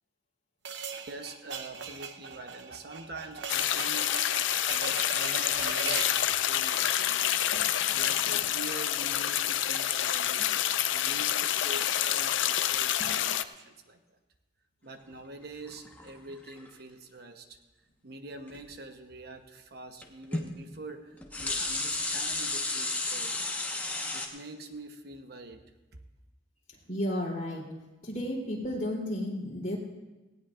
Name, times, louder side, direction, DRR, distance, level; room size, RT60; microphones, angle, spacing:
sound 1, 0.7-6.2, right 6 dB, 75° right, 0.9 m, -39 dB
voice 1, 1.1-4.1 4.7-7.6 7.9-14.0 14.8-17.6 18.0-23.5 24.1-25.6, right 2 dB, 55° right, 6 dB, 1.0 m, -45 dB
sound 2, 3.5-13.4, left 11 dB, 80° left, 0.5 m, -28 dB
sound 3, 15.6-16.7 18.5-18.6 20.0-20.1 20.3-20.5 21.1-24.3, left 2 dB, 10° left, 1.2 m, -32 dB
voice 2, 26.9-27.6 28.0-29.8, left 1 dB, 40° left, -3 dB, 3.4 m, -33 dB
18.5 x 17.0 x 2.5 m, 1.1 s
head